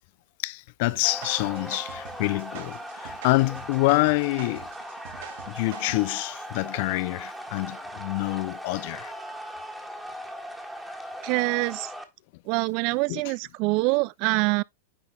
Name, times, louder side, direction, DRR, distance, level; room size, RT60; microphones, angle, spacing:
voice 1, 0.4-4.7 5.5-9.1 13.1-13.2, left 23 dB, 60° left, 0.3 m, -26 dB
sound 1, 0.9-6.2, right 9 dB, 70° right, 2.3 m, -45 dB
sound 2, 1.0-12.0, equal, ahead, 1.5 m, -39 dB
voice 2, 11.2-11.9 12.5-14.6, right 26 dB, 50° right, 0.3 m, -25 dB
9.8 x 4.2 x 3.3 m
hypercardioid pair, 130°, 0 cm